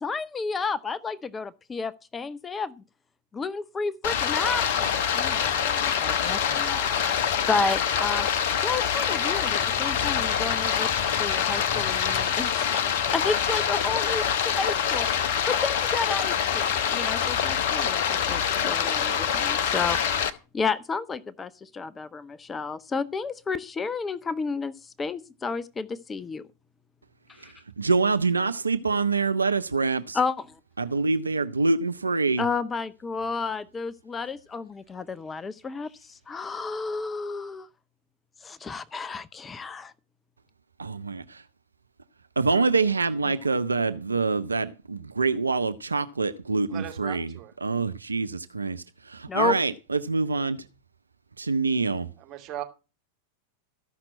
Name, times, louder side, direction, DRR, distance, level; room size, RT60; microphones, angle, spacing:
voice 1, 0.0-2.8 3.3-8.3 8.6-10.9 11.2-12.7 13.1-20.0 20.2-26.4 27.4-27.5 30.1-30.5 32.4-37.7 38.4-39.9 49.3-49.6, left 4 dB, 15° left, 0.6 m, -31 dB
Stream, 4.0-20.3, left 8 dB, 50° left, 1.0 m, -25 dB
voice 2, 27.8-30.2 30.8-32.4 40.8-41.4 42.4-47.3 47.6-50.6 51.4-52.1, right 4 dB, 80° right, 0.6 m, -25 dB
voice 3, 46.7-47.5 52.2-52.6, right 12 dB, 35° right, 2.8 m, -38 dB
14.0 x 5.9 x 7.5 m
figure-of-eight pair, 90°, 0 cm